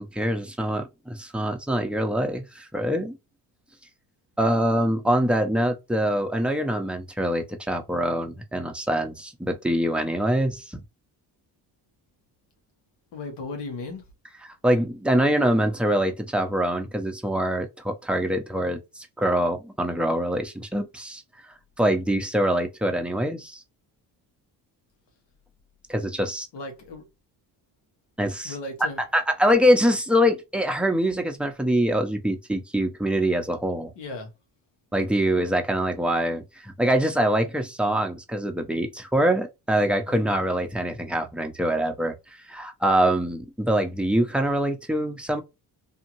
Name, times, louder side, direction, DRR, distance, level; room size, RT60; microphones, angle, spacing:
voice 1, 0.0-3.2 4.4-10.8 14.4-21.2 21.8-23.6 25.9-26.5 28.2-28.5 28.8-33.9 34.9-42.1 42.5-45.4, equal, 5° right, 0.6 m, -24 dB
voice 2, 13.1-14.0 26.5-27.0 28.4-29.0 34.0-34.3 40.1-40.3, left 3 dB, 80° left, 1.2 m, -36 dB
2.7 x 2.4 x 2.9 m
cardioid pair, 75°, 41 cm